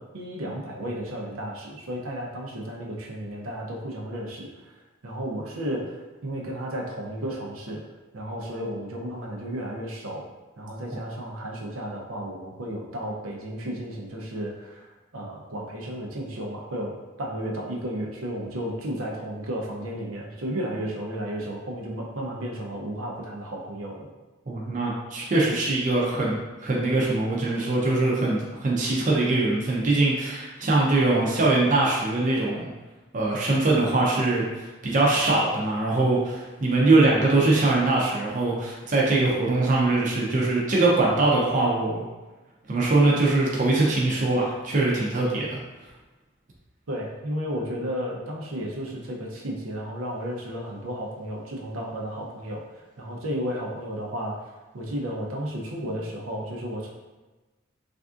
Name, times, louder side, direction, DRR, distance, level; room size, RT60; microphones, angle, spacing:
voice 1, 0.0-4.7 5.0-7.8 8.1-10.2 10.6-24.1 46.9-54.4 54.7-56.9, equal, 90° right, -2 dB, 0.6 m, -33 dB
voice 2, 24.5-32.7 33.1-42.0 42.7-45.6, right 2 dB, 40° right, -4 dB, 0.5 m, -22 dB
3.4 x 2.5 x 2.4 m, 1.2 s
head